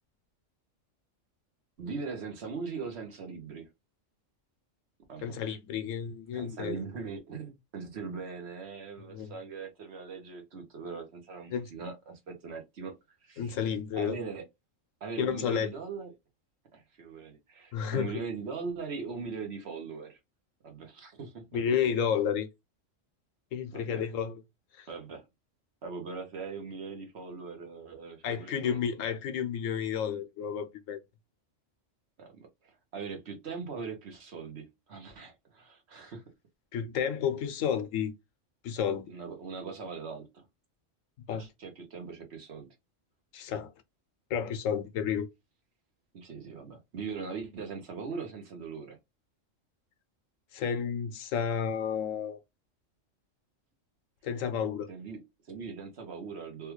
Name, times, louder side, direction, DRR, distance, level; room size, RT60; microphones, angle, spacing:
voice 1, 1.8-3.7 5.1-5.4 6.3-12.9 13.2-13.6 13.9-14.4 15.0-16.1 16.7-20.2 20.6-21.6 23.7-24.0 24.9-25.3 25.8-28.8 32.2-36.2 39.1-40.4 41.3-42.7 46.1-49.0 54.9-56.7, right 5 dB, 60° right, 1.1 m, -40 dB
voice 2, 5.2-6.8 9.1-9.3 11.5-11.7 13.4-14.2 15.2-15.7 17.7-18.1 21.5-22.5 23.5-24.4 24.8-24.9 28.2-31.0 36.7-38.1 38.6-39.1 41.3-41.5 43.3-43.7 44.3-45.3 50.5-52.4 54.2-54.9, left 7 dB, 85° left, 1.0 m, -31 dB
3.4 x 2.4 x 3.0 m
omnidirectional pair, 1.3 m